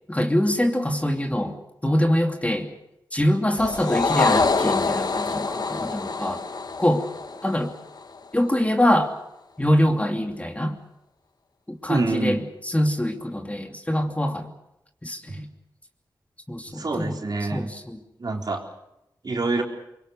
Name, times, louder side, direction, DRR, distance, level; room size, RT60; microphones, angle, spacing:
voice 1, 0.1-1.6 1.8-2.7 3.1-6.4 6.8-7.0 7.4-7.7 8.3-9.1 9.6-10.8 11.8-12.4 12.7-14.5 15.0-15.5 16.5-17.2 17.5-18.0, left 1 dB, 15° left, 5 dB, 2.8 m, -24 dB
sound 1, 3.6-8.2, left 4 dB, 55° left, 1.3 m, -25 dB
voice 2, 11.9-12.4 16.7-17.7 18.2-18.6 19.2-19.6, right 3 dB, 55° right, 2 dB, 4.1 m, -26 dB
24.5 x 23.0 x 6.6 m, 0.86 s
cardioid pair, 55°, 8 cm